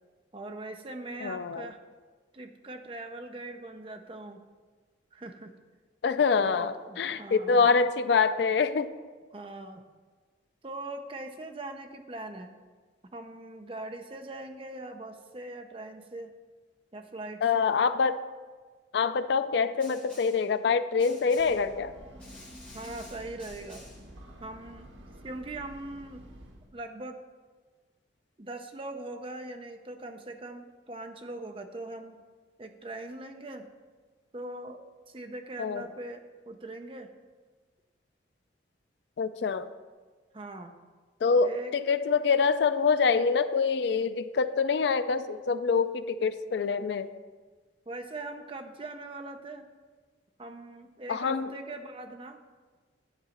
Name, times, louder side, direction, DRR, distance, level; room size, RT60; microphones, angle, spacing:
voice 1, 0.3-1.8 2.3-4.4 5.1-5.5 6.4-7.7 9.3-9.8 10.6-12.6 13.1-16.3 16.9-17.7 22.7-23.8 24.4-24.9 25.2-26.2 26.7-27.2 28.4-32.2 32.6-33.7 34.3-37.1 40.3-40.8 41.4-41.7 47.9-49.7 50.4-52.4, right 2 dB, 30° right, 6 dB, 0.6 m, -41 dB
voice 2, 1.2-1.6 6.0-8.9 17.4-18.2 18.9-21.9 35.6-35.8 39.2-39.7 41.2-47.1 51.1-51.5, left 5 dB, 70° left, 12 dB, 0.4 m, -25 dB
Snare drum, 19.8-20.5 21.0-21.7 22.2-24.1, left 1 dB, 5° left, 2.1 m, -51 dB
Breathing / Train, 21.1-26.8, equal, 90° right, 1.2 m, -50 dB
10.5 x 4.0 x 7.1 m, 1.4 s
head